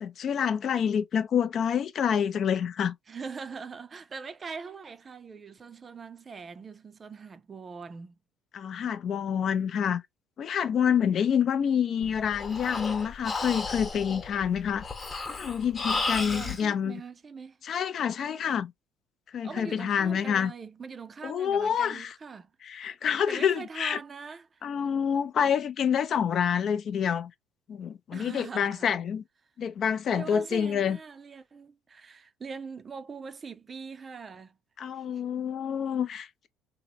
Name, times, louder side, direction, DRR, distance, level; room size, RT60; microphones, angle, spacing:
voice 1, 0.0-2.9 8.5-10.0 10.4-14.8 15.3-17.0 17.6-18.7 19.3-20.5 21.2-22.1 22.6-24.0 24.6-27.3 27.7-29.2 29.6-31.0 34.8-36.5, left 8 dB, 55° left, 0.4 m, -27 dB
voice 2, 3.1-8.1 16.1-17.6 19.4-22.5 23.3-24.6 28.1-28.9 30.1-34.6 35.1-35.2, right 5 dB, 35° right, 0.4 m, -42 dB
Breathing, 12.0-16.6, left 3 dB, 35° left, 1.0 m, -33 dB
2.9 x 2.0 x 2.8 m
hypercardioid pair, 65°, 0 cm